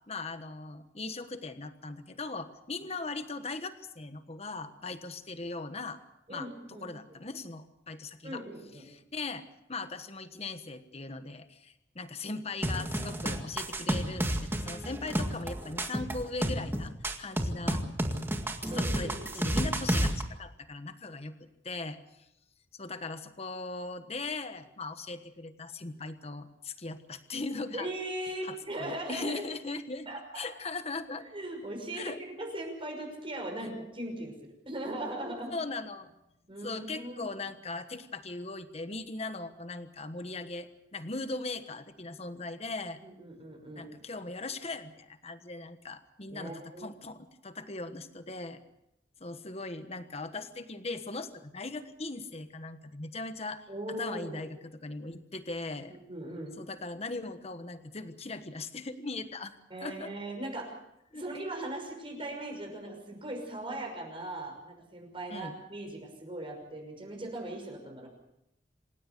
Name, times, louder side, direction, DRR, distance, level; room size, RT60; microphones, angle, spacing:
voice 1, 0.1-6.0 6.3-6.5 6.8-8.4 8.9-16.9 17.2-17.8 18.7-22.0 22.8-27.9 28.4-31.2 31.9-32.2 33.6-33.7 35.5-36.1 36.6-43.0 43.8-48.6 49.2-53.7 54.0-56.0 56.6-59.5 59.8-60.1 61.1-61.2 65.3-65.5, left 3 dB, 35° left, 10 dB, 1.3 m, -39 dB
voice 2, 6.3-7.2 8.2-8.8 18.7-19.5 27.7-29.5 30.1-30.4 31.3-35.5 36.5-37.3 43.0-43.9 46.3-46.9 53.7-54.5 55.9-56.5 59.7-60.8 61.1-68.1, right 1 dB, 30° right, 2 dB, 5.8 m, -39 dB
sound 1, 12.6-20.2, right 1 dB, 15° right, 1.9 m, -31 dB
27.0 x 16.5 x 6.8 m, 0.84 s
head